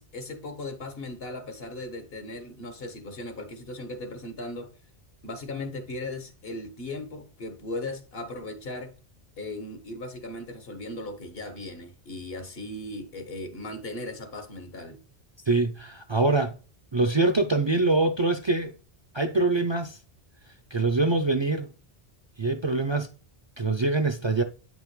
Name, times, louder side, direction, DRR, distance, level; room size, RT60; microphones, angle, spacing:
voice 1, 0.0-4.7 5.2-8.9 9.4-15.0, left 2 dB, 70° left, 1.5 m, -37 dB
voice 2, 15.5-16.5 16.9-18.7 19.1-20.0 20.7-21.7 22.4-23.1 23.6-24.4, right 3 dB, 35° right, 0.5 m, -24 dB
8.9 x 5.4 x 3.1 m
omnidirectional pair, 1.0 m